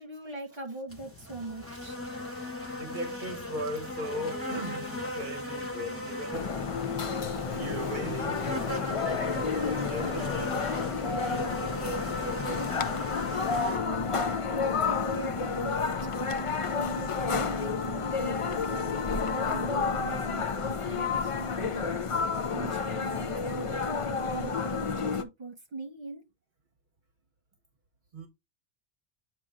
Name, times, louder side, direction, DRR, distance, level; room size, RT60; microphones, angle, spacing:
voice 1, 0.0-2.0 14.6-15.8 16.7-21.9 22.5-26.2, right 2 dB, 25° right, 1.8 m, -40 dB
sound 1, 0.9-13.8, left 2 dB, 10° left, 1.4 m, -38 dB
voice 2, 1.4-2.5 2.8-6.5 7.3-10.7 11.1-13.5 14.5-14.6 18.1-18.2 28.1-28.3, right 1 dB, 45° right, 1.1 m, -39 dB
sound 2, 6.3-25.2, left 5 dB, 40° left, 0.5 m, -30 dB
8.4 x 3.0 x 3.7 m
omnidirectional pair, 1.2 m